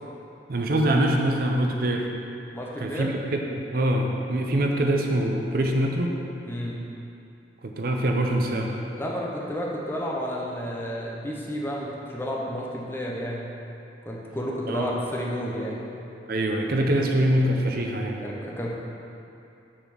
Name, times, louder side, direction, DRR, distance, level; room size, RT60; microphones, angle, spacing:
voice 1, 0.5-2.1 2.8-6.2 7.6-8.7 14.7-14.9 16.3-18.2, right 1 dB, 55° right, 2 dB, 0.5 m, -24 dB
voice 2, 2.5-3.1 6.5-6.8 8.9-13.5 14.0-15.9 18.2-18.7, equal, 10° left, -3 dB, 0.7 m, -31 dB
6.1 x 4.1 x 6.1 m, 2.8 s
head